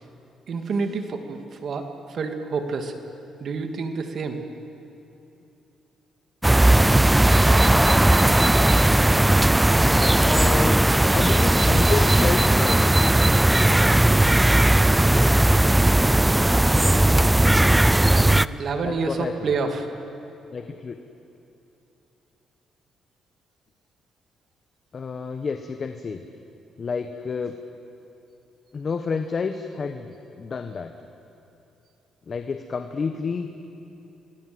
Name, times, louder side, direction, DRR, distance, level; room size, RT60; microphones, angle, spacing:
voice 1, 0.5-2.9 3.4-4.4 18.1-19.9, right 4 dB, 55° right, 6 dB, 2.4 m, -28 dB
sound 1, 6.4-18.5, right 1 dB, 10° right, 0.5 m, -17 dB
voice 2, 10.1-10.8 11.1-12.9 18.8-19.5 20.5-21.0 24.9-26.2 26.8-27.5 28.7-30.9 32.3-33.5, left 5 dB, 40° left, 7 dB, 1.2 m, -29 dB
25.5 x 21.0 x 8.0 m, 2.8 s
cardioid pair, 90°, 0 cm